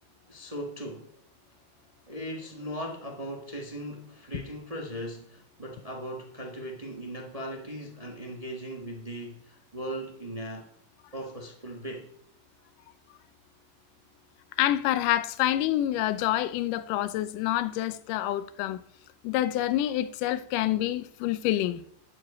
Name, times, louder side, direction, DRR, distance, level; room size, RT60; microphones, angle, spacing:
voice 1, 0.3-1.1 2.1-10.6 11.1-12.1, equal, 40° right, 0.4 m, -38 dB
voice 2, 14.6-18.8 19.2-21.8, left 13 dB, 80° left, 2.2 m, -27 dB
11.5 x 4.9 x 8.6 m
omnidirectional pair, 3.7 m